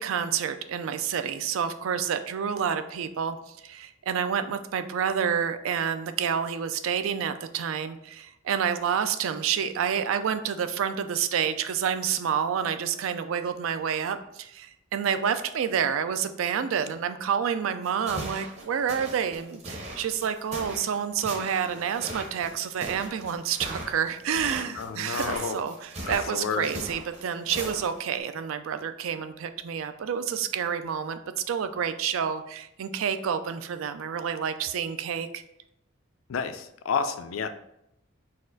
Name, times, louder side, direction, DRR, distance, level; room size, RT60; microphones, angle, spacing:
voice 1, 0.0-35.4, right 7 dB, 90° right, 10 dB, 0.4 m, -29 dB
sound 1, 17.8-28.1, right 1 dB, 35° right, 0.7 m, -39 dB
voice 2, 24.8-25.6 26.1-26.7 36.3-37.5, left 6 dB, 90° left, 9 dB, 0.4 m, -30 dB
4.1 x 2.4 x 3.8 m, 0.79 s
head